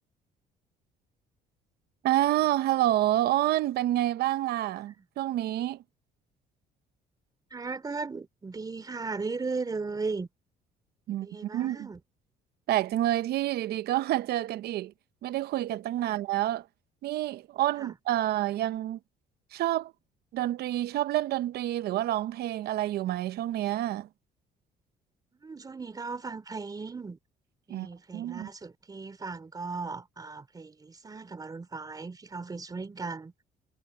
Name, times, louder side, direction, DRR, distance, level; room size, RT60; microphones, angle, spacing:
voice 1, 2.0-5.8 11.1-11.3 11.5-11.9 12.7-14.9 15.2-16.6 17.0-19.0 19.5-19.9 20.3-24.1 27.7-27.9 28.1-28.5, right 14 dB, 70° right, 0.8 m, -28 dB
voice 2, 7.5-10.3 11.1-12.0 16.0-16.2 17.8-17.9 25.4-27.2 27.7-33.3, right 4 dB, 20° right, 3.1 m, -37 dB
cardioid pair, 110°, 17 cm